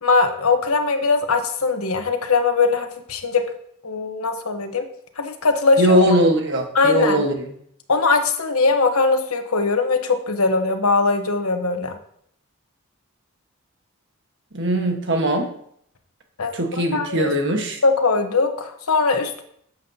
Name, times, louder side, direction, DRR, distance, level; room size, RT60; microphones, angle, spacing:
voice 1, 0.0-3.4 3.8-4.8 5.2-6.0 6.7-7.2 7.9-12.0 16.4-17.3 17.8-19.4, left 4 dB, 80° left, 6 dB, 1.1 m, -20 dB
voice 2, 5.8-7.4 14.5-15.5 16.5-17.8, right 1 dB, 55° right, 4 dB, 1.4 m, -20 dB
12.0 x 7.5 x 2.8 m, 0.67 s
head